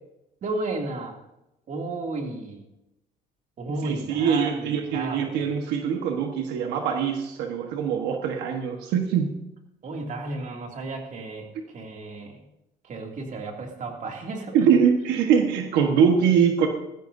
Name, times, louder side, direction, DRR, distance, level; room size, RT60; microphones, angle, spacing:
voice 1, 0.4-1.2 1.7-2.6 3.6-5.4 9.8-12.5 12.8-14.7, right 2 dB, 50° right, 2 dB, 2.6 m, -33 dB
voice 2, 3.8-9.4 14.5-16.7, right 7 dB, 90° right, 4 dB, 1.4 m, -23 dB
19.0 x 15.0 x 2.7 m, 0.91 s
cardioid pair, 110°, 17 cm